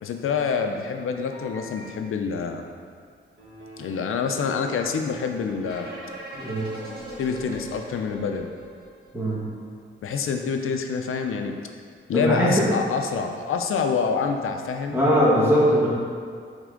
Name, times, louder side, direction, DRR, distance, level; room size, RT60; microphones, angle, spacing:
voice 1, 0.0-2.6 3.8-5.9 6.8-8.5 10.0-11.5 12.1-15.0, left 5 dB, 80° left, 5 dB, 0.6 m, -27 dB
sound 1, 1.1-2.0 3.4-6.0 6.4-8.0, equal, 75° right, 1.6 m, -45 dB
sound 2, 5.6-9.5, right 1 dB, 50° right, 1.3 m, -41 dB
voice 2, 6.3-6.7 9.1-9.4 12.1-12.6 14.9-15.9, equal, 10° right, -7 dB, 1.4 m, -20 dB
8.4 x 3.6 x 3.8 m, 2.1 s
wide cardioid pair, 175°, 21 cm